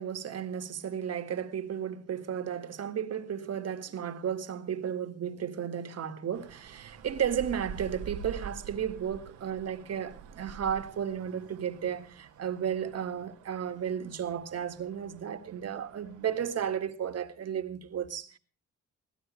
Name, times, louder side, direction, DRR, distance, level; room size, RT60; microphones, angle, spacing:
voice 1, 0.0-18.4, right 8 dB, 55° right, 2.0 m, -34 dB
sound 1, 6.3-16.8, right 8 dB, 80° right, 1.6 m, -47 dB
22.0 x 16.5 x 3.2 m
cardioid pair, 90°, 30 cm